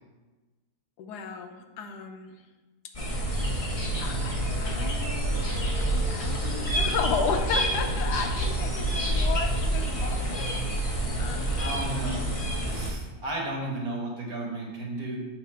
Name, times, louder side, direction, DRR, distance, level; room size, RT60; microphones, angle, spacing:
voice 1, 1.0-2.4 4.0-10.6 11.2-11.9 12.7-13.0, left 6 dB, 90° left, 5 dB, 1.2 m, -34 dB
sound 1, 2.9-12.9, right 1 dB, 30° left, 0.6 m, -28 dB
Singing, 4.4-9.8, right 1 dB, 45° right, 0.9 m, -46 dB
voice 2, 11.6-12.4 12.6-15.2, right 2 dB, 65° right, -1 dB, 1.7 m, -33 dB
7.5 x 2.7 x 5.5 m, 1.2 s
omnidirectional pair, 1.7 m